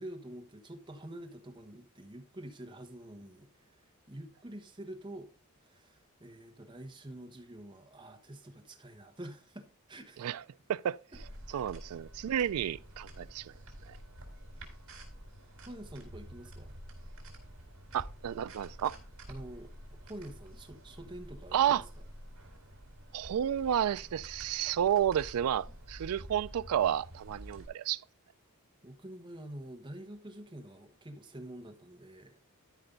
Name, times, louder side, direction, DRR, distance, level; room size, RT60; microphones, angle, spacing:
voice 1, 0.0-5.3 5.6-10.3 11.5-11.7 15.7-16.7 19.3-19.7 20.0-21.8 28.8-32.5, right 1 dB, 20° right, 1.3 m, -47 dB
sound 1, 11.1-27.6, right 1 dB, 65° right, 4.0 m, -49 dB
voice 2, 11.5-13.5 13.9-14.0 17.9-19.0 21.5-21.8 23.1-28.0, right 10 dB, 85° right, 0.3 m, -31 dB
13.0 x 5.5 x 3.8 m
head